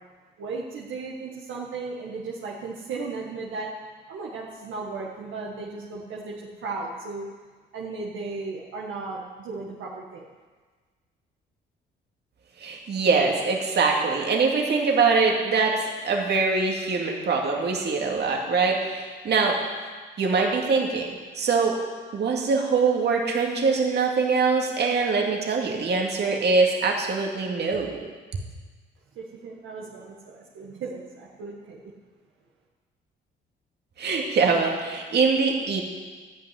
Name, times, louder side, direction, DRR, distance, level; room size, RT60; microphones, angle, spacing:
voice 1, 0.4-3.7 4.1-7.3 7.7-10.3 29.1-31.9, right 3 dB, 80° right, -3 dB, 1.6 m, -35 dB
voice 2, 12.6-19.6 20.2-21.8 22.1-28.0 34.0-35.8, right 4 dB, 60° right, 0 dB, 2.2 m, -23 dB
13.0 x 5.9 x 9.5 m, 1.4 s
cardioid pair, 90°, 20 cm